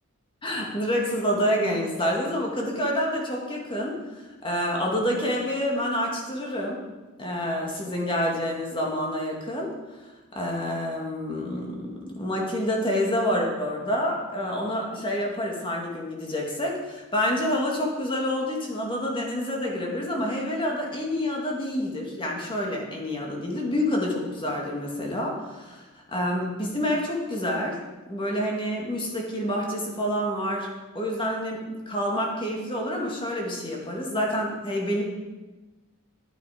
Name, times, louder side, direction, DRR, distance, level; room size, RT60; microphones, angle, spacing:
voice 1, 0.4-4.0 4.4-6.8 7.2-9.7 10.3-27.8 28.1-30.7 30.9-31.6 31.9-35.0, equal, 25° left, -1 dB, 2.1 m, -28 dB
11.5 x 8.8 x 5.0 m, 1.2 s
head